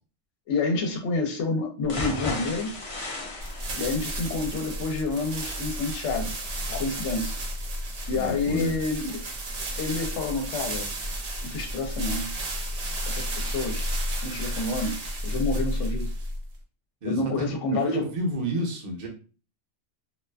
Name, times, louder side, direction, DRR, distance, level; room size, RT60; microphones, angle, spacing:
voice 1, 0.5-2.8 3.7-6.3 6.7-7.3 8.1-9.2 9.8-10.9 11.4-12.3 13.1-13.9 14.2-16.1 17.0-18.1, left 3 dB, 70° left, 4 dB, 0.9 m, -29 dB
sound 1, 1.8-9.8 10.2-10.3 10.7-10.8, left 2 dB, 45° left, 0.4 m, -37 dB
sound 2, 3.4-16.5, equal, 75° right, 0.3 m, -32 dB
voice 2, 8.1-8.7 17.0-19.1, right 1 dB, 45° right, -1 dB, 0.6 m, -30 dB
2.4 x 2.4 x 2.2 m, 0.36 s
omnidirectional pair, 1.3 m